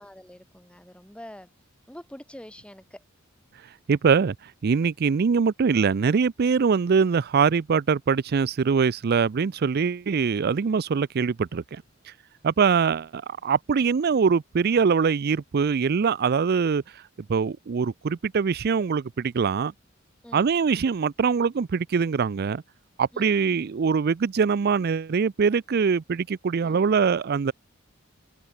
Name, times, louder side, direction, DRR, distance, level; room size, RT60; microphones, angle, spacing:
voice 1, 0.0-1.5 1.9-3.0 20.2-20.5 23.1-23.6 26.6-26.8, equal, 5° left, 2.5 m, -45 dB
voice 2, 3.9-11.8 12.4-17.0 17.3-19.7 20.3-22.6 23.0-27.5, right 5 dB, 50° right, 0.4 m, -23 dB
head